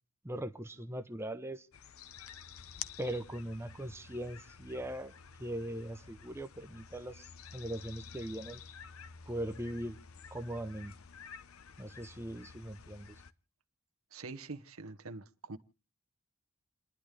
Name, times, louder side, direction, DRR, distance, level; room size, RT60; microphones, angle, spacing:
voice 1, 0.2-1.7 3.0-5.1 5.4-8.6 9.3-10.0 10.3-10.9 11.8-13.2, right 1 dB, 10° right, 0.8 m, -40 dB
sound 1, 1.7-13.3, left 7 dB, 85° left, 0.7 m, -50 dB
voice 2, 14.1-15.6, right 3 dB, 80° right, 1.1 m, -45 dB
29.5 x 10.5 x 3.3 m
head